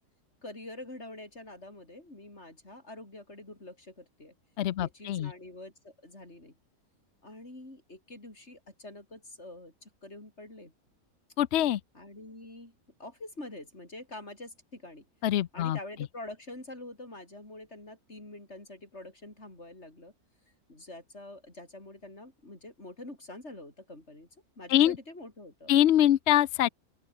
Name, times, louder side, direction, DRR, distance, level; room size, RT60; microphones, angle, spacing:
voice 1, 0.4-4.3 4.8-6.5 7.2-10.7 11.9-12.7 13.0-15.1 15.5-20.1 20.7-24.3 24.6-25.7, left 2 dB, 45° left, 6.4 m, -46 dB
voice 2, 4.6-5.3 11.4-11.8 15.2-15.8 24.7-24.9 25.7-26.7, left 12 dB, 60° left, 0.7 m, -24 dB
open air
omnidirectional pair, 1.6 m